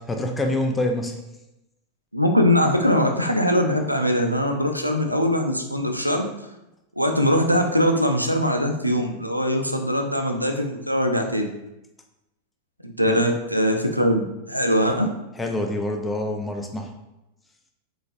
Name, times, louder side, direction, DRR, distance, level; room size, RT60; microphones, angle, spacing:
voice 1, 0.1-1.2 13.1-13.2 15.4-16.9, left 1 dB, 10° left, 3 dB, 0.5 m, -26 dB
voice 2, 2.1-6.3 7.0-11.5 12.8-14.2 14.5-15.1, equal, 90° right, 4 dB, 0.4 m, -21 dB
3.9 x 3.1 x 2.5 m, 0.93 s
figure-of-eight pair, 90°, 0 cm